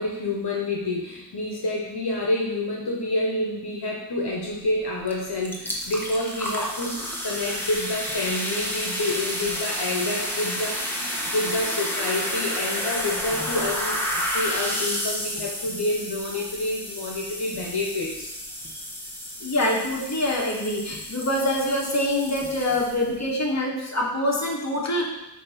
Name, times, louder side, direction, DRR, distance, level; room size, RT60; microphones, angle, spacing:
voice 1, 0.0-18.3 18.6-18.7, left 2 dB, 70° left, -2 dB, 1.2 m, -28 dB
sound 1, 5.1-5.2 5.4-23.2, equal, 5° left, 1.2 m, -31 dB
voice 2, 19.4-25.1, left 1 dB, 40° left, -3 dB, 1.5 m, -25 dB
8.5 x 2.9 x 5.8 m, 0.90 s
wide cardioid pair, 85°, 41 cm